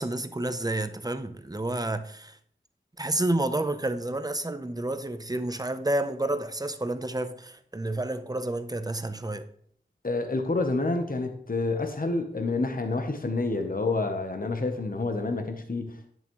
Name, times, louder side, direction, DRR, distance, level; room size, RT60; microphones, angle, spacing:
voice 1, 0.0-2.4 3.0-9.5, right 1 dB, 20° right, 0.7 m, -30 dB
voice 2, 10.0-16.1, left 3 dB, 50° left, 0.9 m, -28 dB
10.5 x 6.9 x 3.1 m
wide cardioid pair, 55°, 19 cm